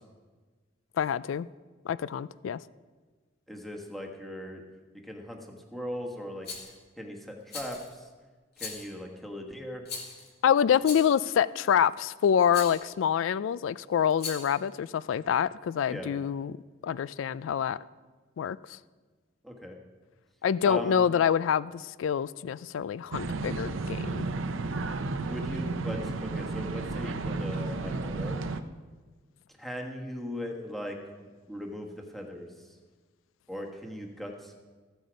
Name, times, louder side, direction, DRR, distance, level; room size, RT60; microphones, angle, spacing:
voice 1, 1.0-1.5 1.9-2.6 10.4-16.6 16.8-17.8 18.4-18.6 20.4-24.3, left 8 dB, 70° left, 19 dB, 0.3 m, -26 dB
voice 2, 3.5-4.6 5.0-6.5 7.0-8.0 8.6-9.8 15.9-16.1 19.4-19.8 20.6-21.0 25.3-28.4 29.6-32.5 33.5-34.6, left 1 dB, ahead, 1 dB, 1.4 m, -39 dB
Rattle, 6.4-6.7 7.5-7.9 8.6-8.9 9.9-10.3 10.8-11.2 12.5-12.8 14.1-14.6, left 4 dB, 55° left, 2.3 m, -39 dB
sound 1, 23.1-28.6, right 3 dB, 80° right, 0.6 m, -32 dB
14.5 x 8.0 x 5.1 m, 1.4 s
head